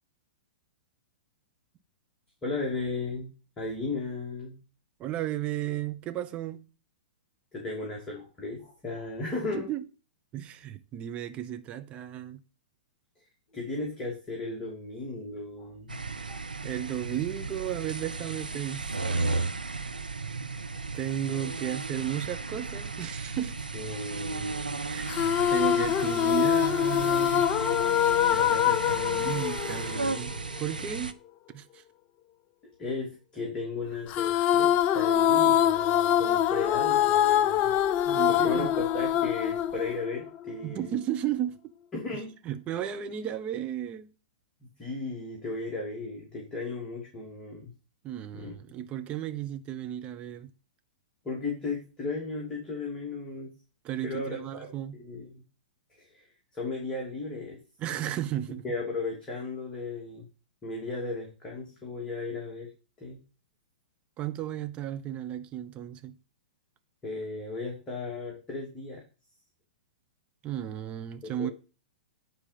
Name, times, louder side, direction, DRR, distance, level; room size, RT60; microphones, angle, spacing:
voice 1, 2.4-3.3 3.6-4.6 7.5-9.7 13.5-16.0 16.3-16.4 23.7-24.9 32.8-37.7 38.3-40.9 41.9-42.4 42.7-42.8 44.8-47.7 48.3-48.5 51.2-53.5 54.0-54.7 54.9-55.4 55.9-56.3 56.5-57.6 58.6-60.2 60.6-62.7 63.0-63.2 67.0-69.0 71.2-71.5, left 3 dB, 20° left, 2.9 m, -35 dB
voice 2, 5.0-6.7 9.5-9.8 10.3-12.4 16.6-19.5 20.9-23.7 24.9-27.5 28.3-31.2 31.5-31.8 38.1-38.7 40.6-41.7 42.4-44.1 48.0-50.5 53.8-55.0 57.8-58.6 64.2-66.2 70.4-71.5, right 11 dB, 30° right, 1.0 m, -34 dB
sound 1, 15.9-31.1, right 3 dB, 85° right, 0.7 m, -35 dB
sound 2, 25.1-30.6 34.1-40.5, left 10 dB, 35° left, 0.5 m, -24 dB
10.0 x 4.6 x 7.0 m
figure-of-eight pair, 105°, 5 cm